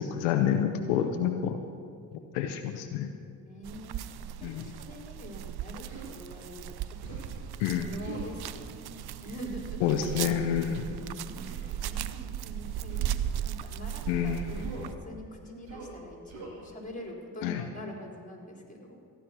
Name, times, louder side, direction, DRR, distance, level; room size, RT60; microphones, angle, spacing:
voice 1, 0.0-1.6 2.3-3.1 4.4-4.7 7.6-7.9 9.8-10.9 14.1-14.6 17.4-17.6, left 9 dB, 85° left, 6 dB, 0.8 m, -28 dB
voice 2, 3.4-4.0 4.4-7.2 7.8-9.8 10.1-10.4 10.6-19.0, left 1 dB, 15° left, 0 dB, 4.4 m, -44 dB
sound 1, 3.6-14.9, right 10 dB, 55° right, 0.7 m, -37 dB
Human voice, 5.9-6.1 7.0-7.4 8.0-8.3 10.0-10.2 11.4-11.7 12.9-13.2 14.6-15.0 15.6-16.0 16.3-16.6, right 4 dB, 80° right, 3.0 m, -43 dB
15.0 x 11.0 x 6.0 m, 2.3 s
hypercardioid pair, 50°, 45 cm